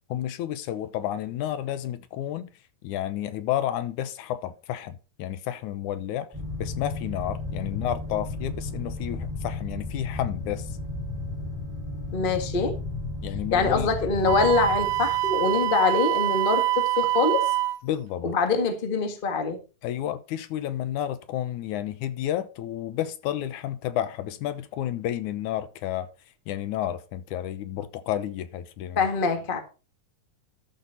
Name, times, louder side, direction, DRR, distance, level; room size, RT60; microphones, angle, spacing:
voice 1, 0.1-2.5 2.8-6.3 6.6-10.8 13.2-13.9 17.8-18.3 19.8-26.1 26.5-29.1, left 11 dB, 80° left, 2.3 m, -31 dB
sound 1, 6.3-15.9, left 2 dB, 5° right, 1.7 m, -34 dB
voice 2, 12.1-12.8 13.5-17.5 18.2-19.6 28.9-29.6, left 4 dB, 25° left, 1.1 m, -24 dB
Wind instrument woodwind instrument, 14.3-17.8, right 17 dB, 75° right, 2.0 m, -25 dB
13.0 x 6.2 x 4.4 m
omnidirectional pair, 3.5 m